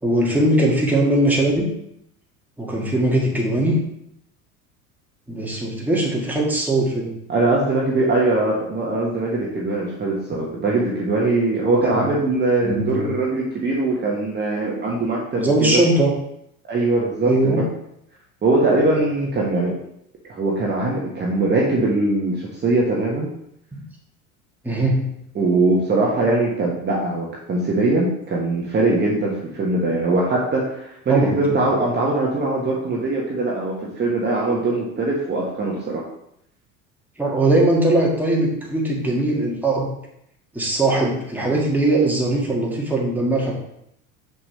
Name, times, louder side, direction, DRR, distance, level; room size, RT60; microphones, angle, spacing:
voice 1, 0.0-1.7 2.6-3.8 5.3-7.2 11.8-12.0 12.6-13.1 15.4-16.1 17.3-17.7 23.7-23.8 24.6-25.1 31.1-31.3 37.2-39.9 40.5-43.5, right 1 dB, 5° right, -3 dB, 1.8 m, -20 dB
voice 2, 7.3-15.8 16.7-17.6 18.4-19.8 20.3-23.3 25.3-36.0, right 2 dB, 25° right, -3 dB, 1.4 m, -21 dB
6.2 x 5.9 x 3.2 m, 0.76 s
figure-of-eight pair, 75°, 43 cm